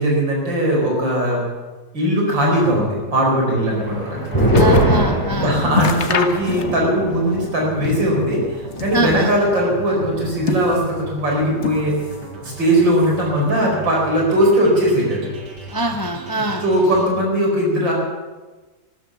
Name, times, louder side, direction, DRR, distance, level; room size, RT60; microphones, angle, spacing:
voice 1, 0.0-1.4 1.9-4.5 5.3-8.4 8.8-11.9 12.4-15.3 16.4-17.9, equal, 80° right, -1 dB, 5.4 m, -19 dB
sound 1, 2.3-17.1, right 2 dB, 65° right, 2.5 m, -37 dB
sound 2, 3.7-10.7 11.0-11.1 11.4-11.9, equal, 10° left, 5.4 m, -23 dB
sound 3, 3.8-5.0 5.3-5.4 5.7-7.0 7.3-8.2 8.6-9.5 10.1-11.1 11.6-12.3 12.6-13.3 14.0-14.1, left 7 dB, 45° left, 1.1 m, -27 dB
voice 2, 4.5-5.6 8.9-9.3 15.7-16.6, right 1 dB, 30° left, 6 dB, 0.4 m, -24 dB
14.0 x 13.5 x 6.9 m, 1.3 s
omnidirectional pair, 2.0 m